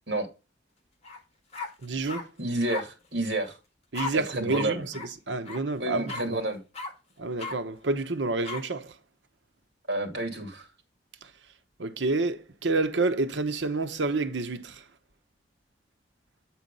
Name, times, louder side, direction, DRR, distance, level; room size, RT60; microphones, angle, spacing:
sound 1, 1.0-1.2 1.5-2.2 2.7-2.8 3.9-4.1 4.5-4.7 4.9-5.1 5.4-5.6 6.1-6.2 6.7-6.9 7.4-7.5 8.4-8.6, left 4 dB, 35° left, 1.7 m, -35 dB
voice 1, 1.8-2.3 3.9-6.4 7.2-8.9 11.8-14.8, right 3 dB, 80° right, 0.9 m, -29 dB
voice 2, 2.4-3.6 4.1-4.9 5.8-6.6 9.9-10.7, right 2 dB, 65° right, 2.6 m, -30 dB
8.4 x 4.4 x 5.4 m
head